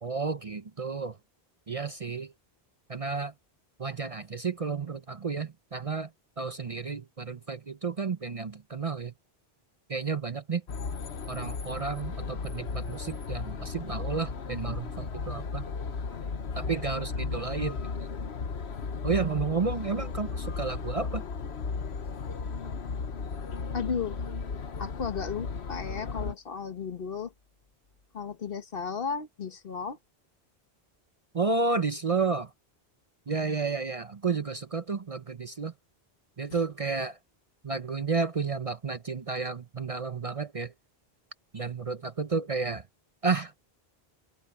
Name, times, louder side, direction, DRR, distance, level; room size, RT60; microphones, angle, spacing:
voice 1, 0.0-1.2 1.7-2.3 2.9-3.3 3.8-6.1 6.4-9.1 9.9-10.6 11.3-15.7 16.5-17.8 19.0-21.2 31.3-32.5 33.3-35.7 36.4-37.2 37.6-40.7 41.5-42.9 43.2-43.5, right 4 dB, 40° right, 0.7 m, -31 dB
sound 1, 10.7-26.3, left 5 dB, 80° left, 1.4 m, -35 dB
voice 2, 23.7-24.2 24.8-27.3 28.1-30.0 36.5-36.6, left 6 dB, 60° left, 1.4 m, -34 dB
open air
omnidirectional pair, 1.1 m